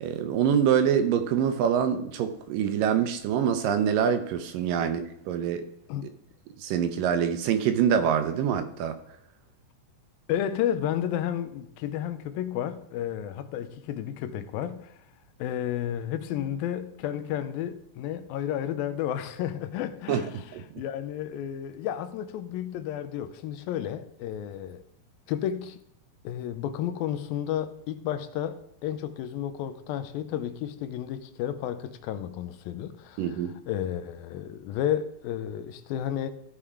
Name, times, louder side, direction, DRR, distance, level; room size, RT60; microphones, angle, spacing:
voice 1, 0.0-5.7 6.6-9.0 20.1-20.3 20.5-20.6 33.2-33.5, right 8 dB, 75° right, 2.3 m, -25 dB
voice 2, 10.3-15.0 15.4-20.3 20.8-24.8 25.3-25.8 26.2-33.4 33.7-36.3, left 10 dB, 85° left, 2.6 m, -32 dB
14.5 x 5.8 x 4.9 m
omnidirectional pair, 4.1 m